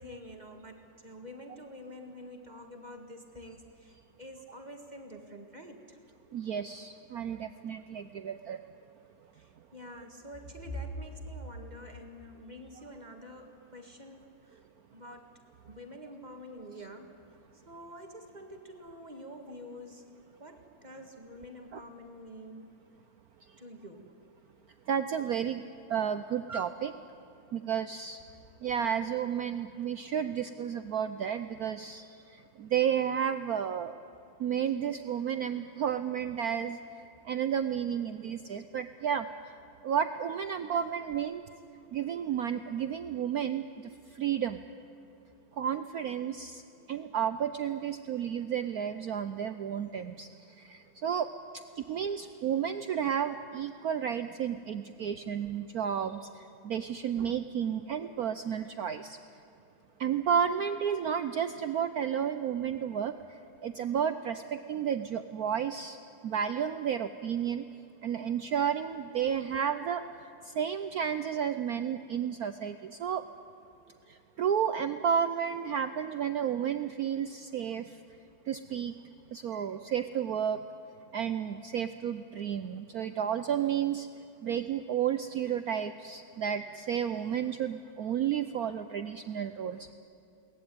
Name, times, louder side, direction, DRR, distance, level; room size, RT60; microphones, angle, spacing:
voice 1, 0.0-6.0 6.7-6.9 8.4-8.8 9.3-14.6 14.9-15.3 15.6-17.1 17.7-22.7 23.6-24.1 25.5-25.6 28.9-29.0 38.7-39.1 40.5-41.1 59.0-59.1, equal, 20° right, 4 dB, 1.8 m, -46 dB
voice 2, 6.3-8.6 21.7-21.8 24.9-25.6 25.9-26.9 27.5-28.2 28.6-33.9 34.4-36.8 37.2-39.3 39.8-41.5 41.9-43.6 44.1-44.6 45.6-46.6 46.9-50.3 50.6-51.3 51.9-59.2 60.0-63.2 63.6-66.0 66.2-67.7 68.0-70.0 70.4-73.2 74.1-77.9 78.5-78.9 79.3-80.6 81.1-84.1 84.4-89.9, right 8 dB, 80° right, 10 dB, 0.8 m, -32 dB
22.5 x 18.5 x 9.4 m, 2.6 s
omnidirectional pair, 2.4 m